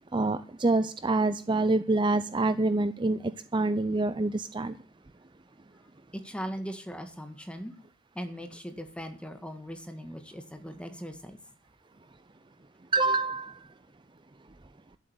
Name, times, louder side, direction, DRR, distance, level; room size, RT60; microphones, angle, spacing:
voice 1, 0.1-3.2 3.5-4.7 12.9-13.6, right 2 dB, 25° right, 0.5 m, -26 dB
voice 2, 6.1-7.7 8.1-11.4, equal, 5° left, 1.7 m, -39 dB
12.5 x 7.7 x 8.0 m
head